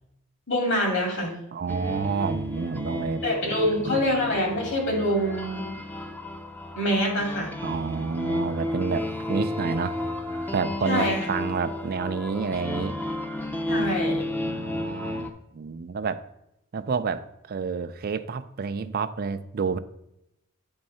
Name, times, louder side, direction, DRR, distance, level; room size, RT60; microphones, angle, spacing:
voice 1, 0.5-1.3 3.2-5.6 6.8-7.5 10.9-11.3 13.7-14.3, equal, 60° left, 0 dB, 2.4 m, -25 dB
voice 2, 1.5-4.0 7.6-10.0 10.5-12.9 13.7-14.0 14.4-16.2 16.7-19.8, right 5 dB, 45° right, 10 dB, 0.4 m, -29 dB
sound 1, 1.7-15.3, left 1 dB, 10° left, 0.5 m, -32 dB
8.9 x 3.6 x 5.5 m, 0.83 s
head